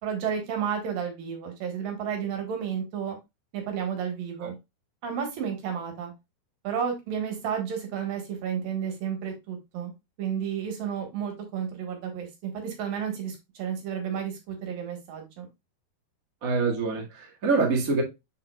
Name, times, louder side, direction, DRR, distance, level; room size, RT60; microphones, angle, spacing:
voice 1, 0.0-3.2 3.5-4.6 5.0-6.1 6.6-9.9 10.2-15.4, right 7 dB, 65° right, 3.0 m, -32 dB
voice 2, 16.4-18.0, right 4 dB, 45° right, 1.1 m, -25 dB
7.1 x 5.7 x 2.3 m
omnidirectional pair, 4.8 m